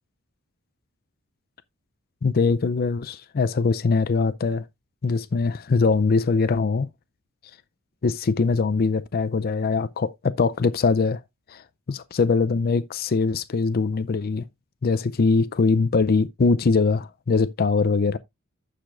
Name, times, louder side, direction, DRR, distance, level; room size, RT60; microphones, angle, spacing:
voice 1, 2.2-4.6 5.0-6.9 8.0-11.2 11.5-14.5 14.8-18.2, left 4 dB, 45° left, 0.5 m, -22 dB
15.0 x 5.0 x 2.4 m
head